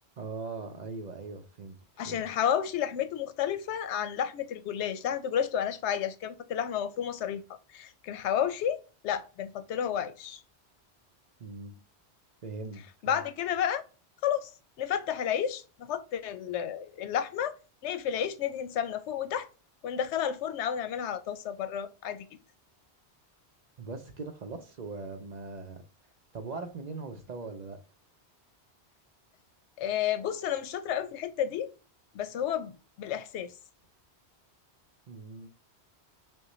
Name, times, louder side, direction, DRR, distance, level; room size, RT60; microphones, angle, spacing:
voice 1, 0.2-1.8 2.0-2.2 11.4-11.8 12.4-13.2 23.8-25.8 26.3-27.8 35.1-35.5, right 4 dB, 50° right, 0.6 m, -40 dB
voice 2, 2.0-7.4 7.7-8.8 9.0-10.4 13.0-13.8 14.2-14.5 14.8-17.5 17.8-19.5 19.8-22.3 29.8-31.7 32.1-32.7 33.0-33.5, left 9 dB, 90° left, 0.9 m, -31 dB
6.3 x 2.2 x 3.1 m
omnidirectional pair, 1.1 m